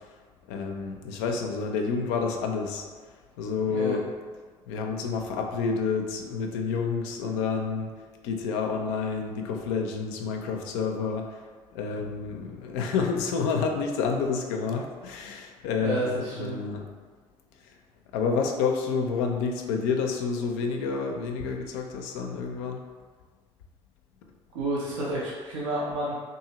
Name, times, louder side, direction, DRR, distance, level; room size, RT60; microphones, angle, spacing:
voice 1, 0.5-2.8 3.4-4.1 4.7-7.9 8.2-11.3 11.7-16.8 18.1-22.8, left 5 dB, 70° left, 3 dB, 0.4 m, -29 dB
voice 2, 3.7-4.0 15.8-16.6 24.5-26.1, right 1 dB, 80° right, -6 dB, 0.5 m, -30 dB
2.7 x 2.6 x 2.8 m, 1.5 s
hypercardioid pair, 55°, 16 cm